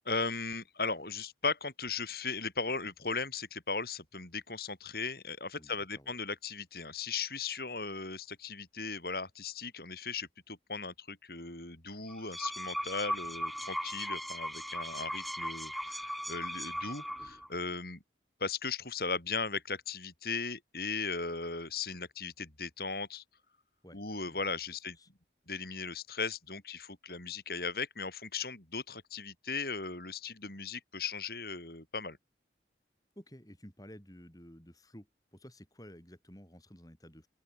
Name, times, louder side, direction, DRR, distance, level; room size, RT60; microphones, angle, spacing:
voice 1, 0.0-18.0 18.4-23.2 23.9-25.0 25.5-32.2, left 4 dB, 55° left, 5.0 m, -37 dB
voice 2, 5.6-6.2 23.8-24.0 24.3-24.4 24.7-25.1 33.2-37.3, equal, 20° left, 7.6 m, -53 dB
sound 1, 12.1-17.5, equal, ahead, 3.9 m, -38 dB
open air
head